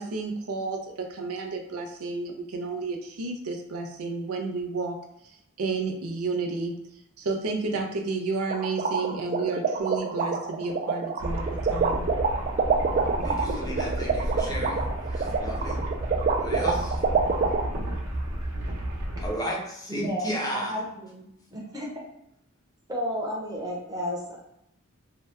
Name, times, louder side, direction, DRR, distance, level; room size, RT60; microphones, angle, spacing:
voice 1, 0.0-5.0 5.6-6.8 7.2-12.1, right 3 dB, 85° right, 3 dB, 0.5 m, -31 dB
sound 1, 8.5-17.6, right 5 dB, 40° right, 0.3 m, -26 dB
sound 2, 11.2-19.3, right 1 dB, 60° right, 0.8 m, -32 dB
voice 2, 13.2-15.8 16.4-17.0 19.2-20.8, equal, 15° left, -2 dB, 0.5 m, -33 dB
voice 3, 19.9-20.3 20.5-21.2 21.5-21.9 22.9-24.4, equal, 15° right, -3 dB, 0.7 m, -32 dB
2.7 x 2.2 x 3.3 m, 0.78 s
head